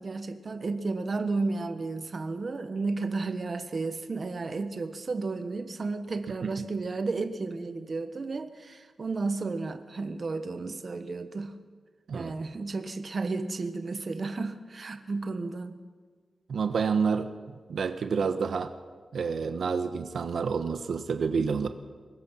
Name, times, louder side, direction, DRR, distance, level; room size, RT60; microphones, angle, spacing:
voice 1, 0.0-11.6 12.1-15.8, right 3 dB, 45° right, 9 dB, 1.3 m, -33 dB
voice 2, 16.5-17.3 17.7-18.7 19.1-21.7, right 5 dB, 80° right, 8 dB, 1.1 m, -28 dB
24.0 x 21.5 x 5.8 m, 1.5 s
wide cardioid pair, 125°, 0 cm